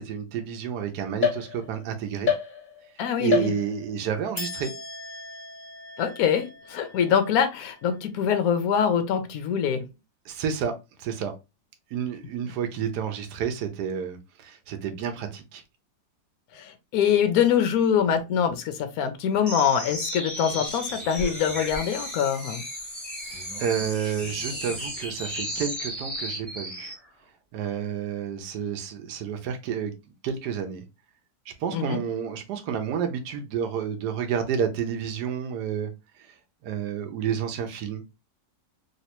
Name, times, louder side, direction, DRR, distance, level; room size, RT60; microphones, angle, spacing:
voice 1, 0.0-2.3 3.2-4.7 10.3-10.7 11.0-11.3 11.9-15.6 23.6-26.9 27.5-29.9 30.2-30.8 31.5-35.9 36.6-38.0, right 8 dB, 70° right, 1.2 m, -30 dB
sound 1, 1.2-1.9 2.3-2.9 3.3-4.0 4.4-7.8, left 7 dB, 35° left, 0.9 m, -31 dB
voice 2, 3.0-3.5 6.0-9.8 16.5-22.6 31.7-32.0, left 8 dB, 70° left, 0.9 m, -24 dB
sound 2, 19.4-27.0, equal, ahead, 1.1 m, -34 dB
3.2 x 2.9 x 2.9 m
omnidirectional pair, 2.0 m